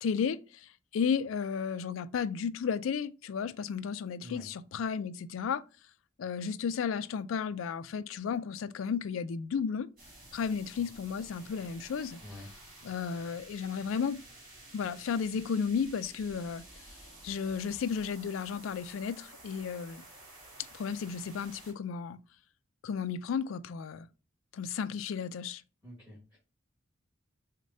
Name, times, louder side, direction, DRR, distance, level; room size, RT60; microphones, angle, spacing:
voice 1, 0.0-5.6 6.2-9.9 10.3-12.2 12.8-14.2 14.7-16.6 17.2-20.0 20.7-22.2 22.8-24.1 24.5-25.6, left 6 dB, 80° left, 0.3 m, -33 dB
sound 1, 10.0-21.7, right 2 dB, 45° right, 2.2 m, -52 dB
voice 2, 25.8-26.4, left 1 dB, 10° right, 1.6 m, -47 dB
6.2 x 2.2 x 2.7 m
head